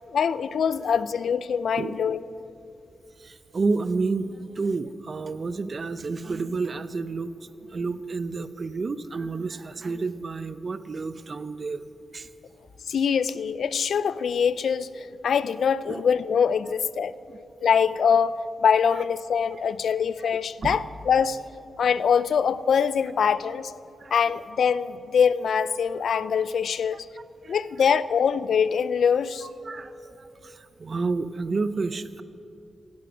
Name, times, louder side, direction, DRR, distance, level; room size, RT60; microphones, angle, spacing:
voice 1, 0.1-2.2 12.9-17.1 17.6-18.3 18.6-21.4 21.8-23.7 24.1-27.1 27.5-29.5, left 7 dB, 70° left, 0.4 m, -23 dB
voice 2, 3.2-7.3 7.7-11.8 12.1-12.3 15.9-16.0 17.3-17.4 20.6-20.8 24.0-24.1 27.4-27.6 29.4-29.9 30.2-32.2, right 4 dB, 45° right, 0.6 m, -30 dB
16.5 x 11.5 x 6.1 m
cardioid pair, 100°, 0 cm